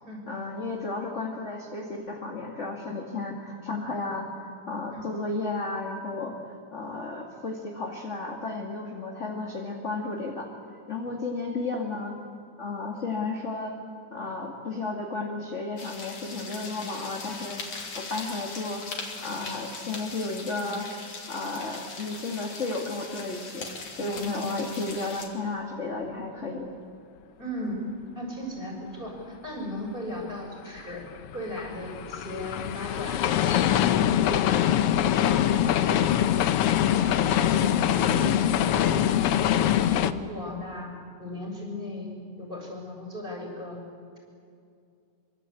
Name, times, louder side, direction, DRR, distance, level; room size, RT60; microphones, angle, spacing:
voice 1, 0.3-10.5 10.9-12.2 12.6-13.8 14.1-18.9 19.2-20.9 21.3-23.7 23.9-26.7, left 3 dB, 25° left, 0 dB, 2.2 m, -33 dB
sound 1, 15.8-25.3, left 3 dB, 55° left, 3.9 m, -40 dB
voice 2, 27.4-27.8 28.2-31.0 31.3-40.9 41.2-43.8, left 1 dB, 15° right, 0 dB, 7.0 m, -36 dB
sound 2, 30.8-40.1, left 11 dB, 70° left, 1.4 m, -23 dB
25.5 x 24.5 x 8.6 m, 2.4 s
omnidirectional pair, 3.5 m